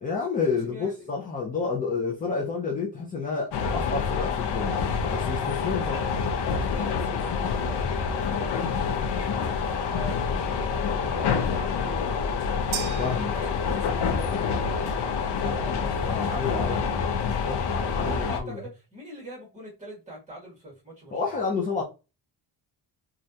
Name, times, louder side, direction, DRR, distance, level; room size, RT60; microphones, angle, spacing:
voice 1, 0.0-4.8 5.1-6.0 13.0-13.4 15.4-16.9 17.4-18.6 21.1-21.8, left 5 dB, 20° left, 0.5 m, -30 dB
voice 2, 0.6-1.1 5.7-5.8 6.7-8.5 9.1-12.3 13.0-17.2 17.8-21.2, right 1 dB, 15° right, 1.6 m, -42 dB
sound 1, 3.5-18.4, left 6 dB, 65° left, 0.6 m, -27 dB
sound 2, 12.7-14.2, right 11 dB, 80° right, 0.5 m, -37 dB
3.2 x 2.4 x 2.7 m
cardioid pair, 180°, 45 cm